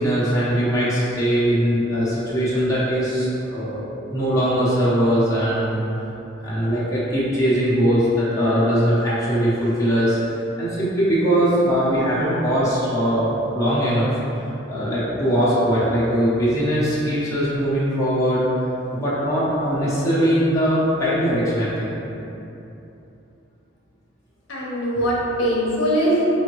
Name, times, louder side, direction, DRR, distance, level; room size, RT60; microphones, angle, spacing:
voice 1, 0.0-3.8 4.1-5.8 6.4-10.2 10.6-14.1 14.7-18.4 18.9-21.9, equal, 15° left, -10 dB, 0.9 m, -21 dB
voice 2, 24.5-26.2, equal, 65° left, -6 dB, 0.8 m, -21 dB
5.0 x 2.7 x 3.0 m, 2.9 s
head